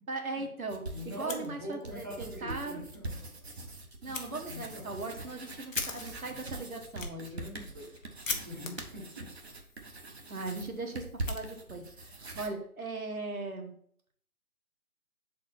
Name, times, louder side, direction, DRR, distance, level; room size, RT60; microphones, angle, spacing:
voice 1, 0.1-2.9 3.6-3.7 4.0-7.5 10.3-13.8, right 3 dB, 70° right, 3 dB, 1.4 m, -39 dB
sound 1, 0.7-1.5 1.8-12.5, right 2 dB, 45° right, 0.9 m, -43 dB
voice 2, 0.9-3.3 4.3-4.8 6.3-6.5 7.2-7.9 8.3-9.3, equal, 10° right, -6 dB, 0.8 m, -43 dB
Fire, 1.2-2.1 2.4-2.5 2.9-3.0 4.1-4.3 4.8-12.0, left 3 dB, 60° left, 1.1 m, -42 dB
6.4 x 4.2 x 4.1 m, 0.62 s
figure-of-eight pair, 155°, 44 cm